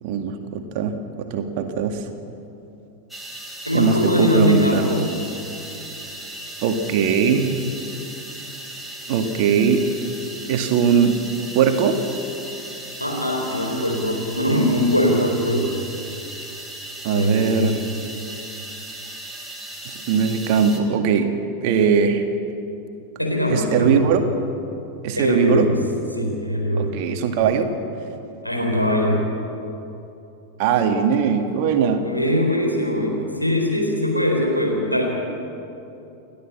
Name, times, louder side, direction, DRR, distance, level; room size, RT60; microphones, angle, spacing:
voice 1, 0.0-2.1 3.7-4.8 6.6-7.7 9.1-9.9 10.5-11.2 11.5-12.0 17.0-17.8 19.9-22.2 23.5-24.2 25.0-25.7 26.8-27.7 30.6-32.0, right 6 dB, 45° right, 6 dB, 1.9 m, -20 dB
sound 1, 3.1-20.8, right 1 dB, ahead, 3.2 m, -37 dB
voice 2, 3.6-5.0 13.0-15.7 17.1-17.7 23.2-24.1 25.2-25.7 26.1-27.0 28.4-29.2 32.0-35.0, left 1 dB, 90° left, 0 dB, 4.0 m, -21 dB
29.5 x 12.0 x 7.4 m, 2.9 s
figure-of-eight pair, 90°, 0 cm